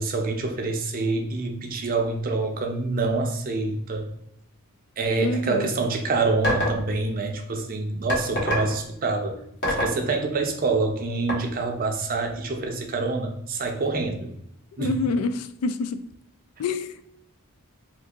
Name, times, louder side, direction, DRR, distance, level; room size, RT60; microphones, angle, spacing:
voice 1, 0.0-4.1 5.0-9.4 9.7-14.3 14.8-15.0, right 3 dB, 40° right, 4 dB, 0.5 m, -26 dB
voice 2, 5.2-5.7 14.8-16.0 16.6-17.1, left 3 dB, 75° left, 12 dB, 0.3 m, -27 dB
sound 1, 6.4-6.8 8.1-8.7 9.6-10.0 11.3-11.4, equal, 50° left, 1.2 m, -24 dB
2.7 x 2.6 x 3.6 m, 0.76 s
head